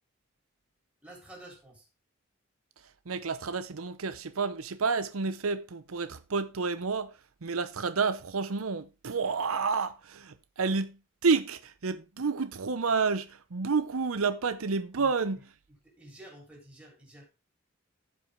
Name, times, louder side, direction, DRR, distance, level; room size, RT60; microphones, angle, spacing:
voice 1, 1.0-1.8 14.9-15.1 16.0-17.3, right 1 dB, 5° right, 3.7 m, -50 dB
voice 2, 3.1-7.1 7.4-15.5, right 4 dB, 85° right, 0.8 m, -30 dB
16.0 x 5.6 x 3.5 m
head